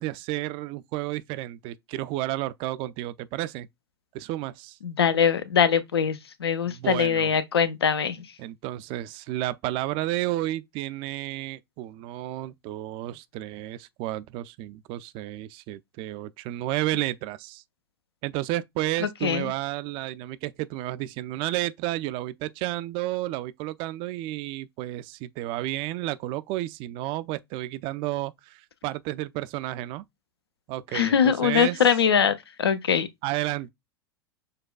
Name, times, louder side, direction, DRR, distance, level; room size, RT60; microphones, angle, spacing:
voice 1, 0.0-3.7 4.1-4.8 6.6-7.3 8.4-17.6 18.2-30.0 30.7-31.8 33.2-33.7, right 16 dB, 40° right, 0.3 m, -31 dB
voice 2, 4.8-8.3 19.0-19.5 30.9-33.1, left 7 dB, 80° left, 0.5 m, -22 dB
6.5 x 2.2 x 2.2 m
figure-of-eight pair, 85°, 13 cm